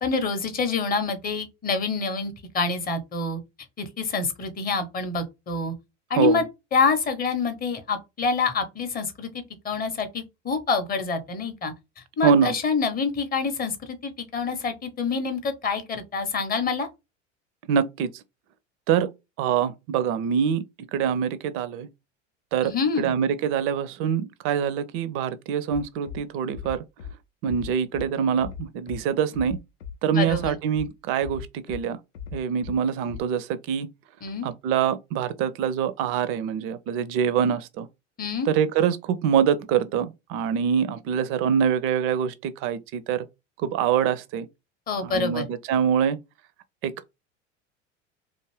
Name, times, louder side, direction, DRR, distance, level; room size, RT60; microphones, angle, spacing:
voice 1, 0.0-3.4 3.8-5.7 6.1-6.4 6.7-9.3 9.6-11.7 12.2-16.9 22.6-23.1 30.1-30.6 34.2-34.5 38.2-38.5 44.9-45.5, left 4 dB, 25° left, 0.6 m, -26 dB
voice 2, 12.2-12.5 17.7-18.1 18.9-19.1 19.4-20.6 20.9-21.9 22.5-22.7 23.0-26.8 27.4-29.6 30.0-32.0 32.3-33.9 34.4-37.9 38.5-43.3 43.6-44.5 45.0-46.2 46.8-47.1, right 8 dB, 40° right, 0.4 m, -24 dB
Bass drum, 25.7-26.2 26.5-27.1 27.5-28.1 28.4-29.0 29.3-29.9 30.3-30.9 31.2-31.8 32.1-32.8 33.1-33.2, left 8 dB, 75° left, 0.5 m, -37 dB
2.5 x 2.4 x 3.0 m
figure-of-eight pair, 75°, 37 cm